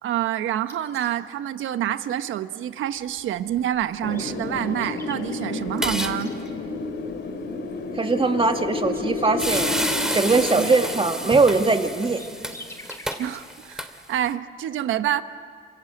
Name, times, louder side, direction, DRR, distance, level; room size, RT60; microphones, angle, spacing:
voice 1, 0.0-6.3 10.6-10.7 13.2-15.2, right 11 dB, 80° right, 11 dB, 1.1 m, -27 dB
sound 1, 0.7-1.1 3.8-3.9 4.1-6.4 8.6-10.7 11.6-13.4, left 2 dB, 15° left, 4.2 m, -44 dB
Wind, 4.0-12.7, left 3 dB, 60° left, 3.1 m, -31 dB
sound 2, 5.7-6.2 6.5-6.6 8.8-9.0 9.4-14.3, equal, 5° right, 2.4 m, -29 dB
voice 2, 7.9-9.7 10.1-12.2, right 3 dB, 25° right, 5 dB, 2.4 m, -21 dB
27.5 x 27.0 x 8.0 m, 2.2 s
cardioid pair, 90°, 20 cm